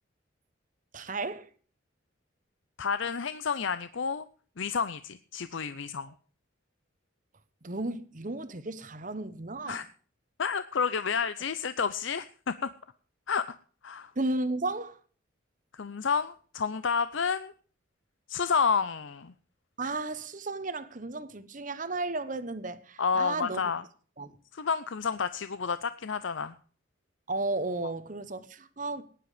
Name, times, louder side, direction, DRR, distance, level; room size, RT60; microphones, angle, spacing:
voice 1, 0.9-1.5 7.6-9.8 14.1-15.0 19.8-23.6 24.2-24.4 27.3-29.0, right 2 dB, 40° right, 1.2 m, -34 dB
voice 2, 2.8-4.2 4.6-6.1 9.7-9.8 10.4-12.7 13.3-13.5 13.8-14.1 15.7-17.5 18.3-19.3 23.0-23.8 24.5-26.5, left 6 dB, 75° left, 0.6 m, -30 dB
18.5 x 10.5 x 5.0 m
head